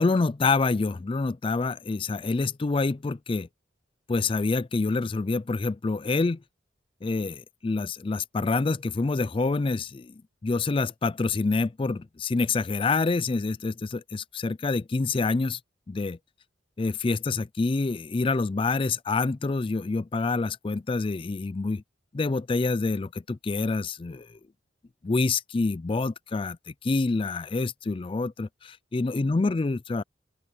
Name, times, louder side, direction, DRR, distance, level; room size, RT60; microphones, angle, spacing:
voice 1, 0.0-3.5 4.1-6.4 7.0-15.6 15.9-16.2 16.8-21.8 22.1-24.4 25.0-30.0, left 3 dB, 30° left, 0.4 m, -27 dB
open air
head